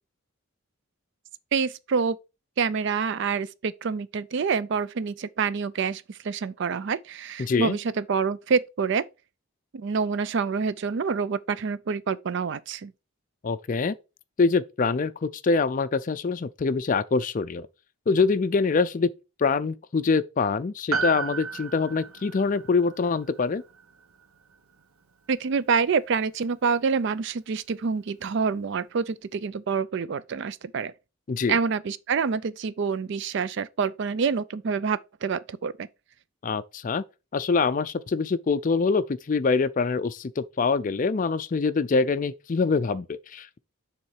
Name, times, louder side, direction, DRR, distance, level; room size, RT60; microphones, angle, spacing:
voice 1, 1.5-2.2 2.6-9.1 9.7-12.9 25.3-30.9 31.5-35.9, right 5 dB, 55° right, 0.4 m, -27 dB
voice 2, 7.4-7.8 13.4-13.9 14.4-17.7 18.1-19.1 19.4-23.6 31.3-31.6 36.4-37.0 37.3-43.6, left 4 dB, 40° left, 0.4 m, -24 dB
Piano, 20.9-25.5 25.8-25.9, right 6 dB, 80° right, 0.9 m, -35 dB
7.1 x 3.7 x 4.8 m
head